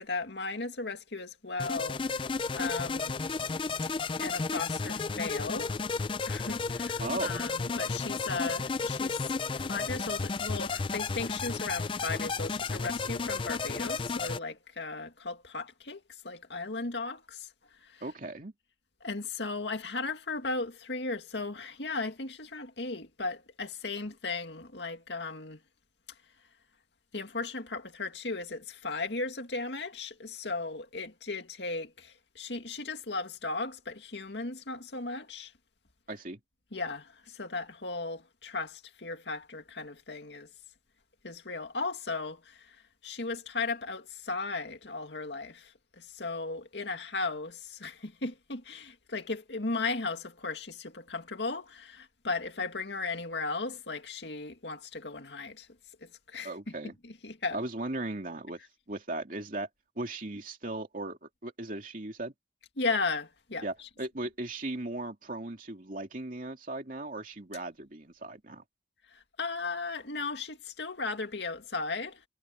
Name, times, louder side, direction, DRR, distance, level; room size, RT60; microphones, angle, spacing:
voice 1, 0.0-2.2 2.5-3.2 4.2-17.5 17.8-18.0 19.0-25.6 27.1-35.5 36.7-40.5 41.2-55.7 56.0-56.5 57.0-57.6 62.8-63.7 69.1-72.2, left 3 dB, 75° left, 2.2 m, -36 dB
sound 1, 1.6-14.4, left 4 dB, 30° left, 0.4 m, -33 dB
voice 2, 7.0-7.4 18.0-18.5 36.1-36.4 56.4-56.9 57.5-58.6 58.9-59.7 60.0-62.3 63.6-68.6, right 2 dB, 50° right, 2.7 m, -37 dB
head